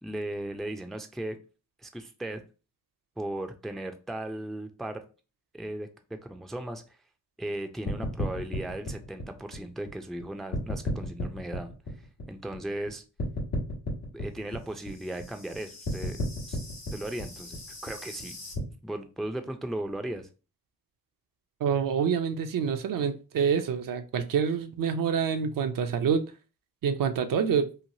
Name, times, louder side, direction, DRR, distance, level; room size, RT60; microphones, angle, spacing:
voice 1, 0.0-1.4 1.8-2.4 3.2-5.0 5.5-5.9 6.2-7.0 7.4-11.7 12.3-13.0 14.1-16.2 16.5-16.6 16.9-18.3 18.8-20.3, right 1 dB, ahead, 0.4 m, -36 dB
sound 1, 7.9-10.2 10.5-12.9 13.2-18.6, left 1 dB, 85° left, 1.2 m, -34 dB
voice 2, 21.6-26.2 26.8-27.7, right 7 dB, 55° right, 0.5 m, -27 dB
3.1 x 2.2 x 2.6 m
supercardioid pair, 45°, 39 cm